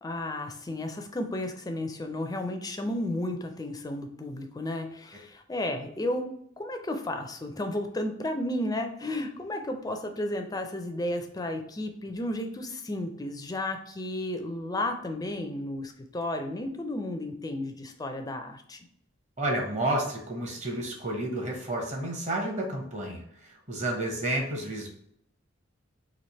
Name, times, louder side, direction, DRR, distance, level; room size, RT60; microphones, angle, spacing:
voice 1, 0.0-18.9, left 1 dB, 20° left, 5 dB, 0.4 m, -33 dB
voice 2, 19.4-24.9, right 1 dB, 35° right, 0 dB, 0.9 m, -31 dB
3.2 x 2.5 x 4.1 m, 0.68 s
head